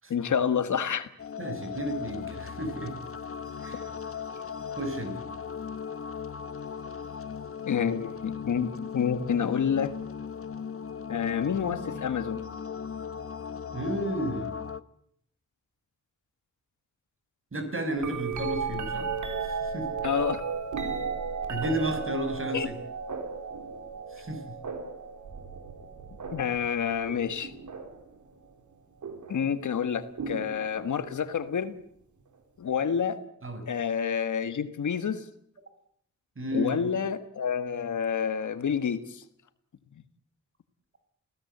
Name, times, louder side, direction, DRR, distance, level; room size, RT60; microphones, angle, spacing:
voice 1, 0.1-1.1 7.7-8.7 8.9-9.9 11.1-12.4 20.0-20.4 22.5-22.7 26.3-27.5 29.3-31.7 32.6-33.2 33.7-35.2 36.5-39.2, left 7 dB, 85° left, 11 dB, 1.6 m, -28 dB
sound 1, 1.2-14.8, left 7 dB, 50° left, 1.1 m, -38 dB
voice 2, 1.4-3.0 3.6-3.9 4.8-5.2 13.7-14.5 17.5-19.1 19.4-19.9 21.5-22.8 24.1-24.6 33.4-33.7 36.4-36.9, right 1 dB, 45° right, 8 dB, 5.9 m, -32 dB
sound 2, 18.0-28.1 29.0-29.4 30.2-31.2 33.0-33.1, right 5 dB, 80° right, 3.4 m, -35 dB
28.5 x 17.0 x 8.0 m, 0.68 s
cardioid pair, 75°, 29 cm